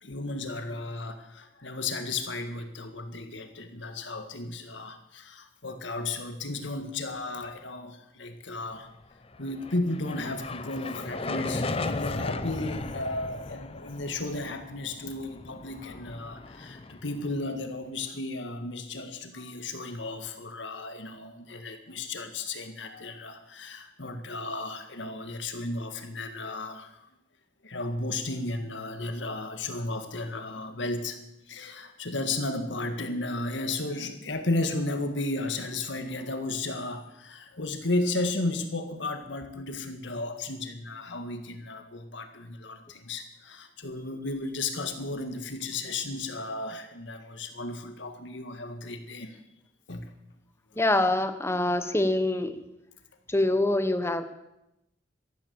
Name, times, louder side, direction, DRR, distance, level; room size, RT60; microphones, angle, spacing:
voice 1, 0.0-8.9 9.4-27.0 27.6-31.2 31.5-49.4 49.9-50.1, left 2 dB, 75° left, 7 dB, 1.8 m, -34 dB
sound 1, 9.3-17.7, left 2 dB, 30° left, 0.7 m, -36 dB
voice 2, 50.8-52.6 53.3-54.2, left 2 dB, 15° left, 9 dB, 1.0 m, -25 dB
13.5 x 12.5 x 7.1 m, 0.87 s
head